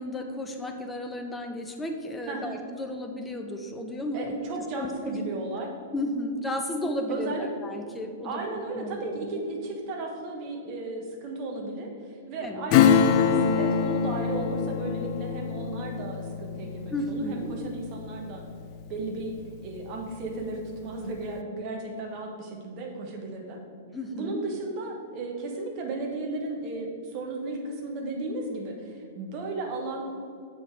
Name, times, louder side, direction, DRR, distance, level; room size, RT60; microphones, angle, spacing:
voice 1, 0.0-5.2 5.9-9.4 12.4-12.7 16.9-17.6 23.9-24.4, left 1 dB, 10° left, 4 dB, 0.7 m, -33 dB
voice 2, 2.3-2.6 4.1-5.7 7.1-7.5 8.2-18.4 18.9-19.3 19.6-23.6 24.1-30.0, right 2 dB, 40° right, 1 dB, 1.3 m, -35 dB
Acoustic guitar / Strum, 12.7-18.9 19.3-19.4, left 7 dB, 40° left, 0.4 m, -25 dB
7.0 x 4.9 x 4.6 m, 2.3 s
figure-of-eight pair, 105°, 0 cm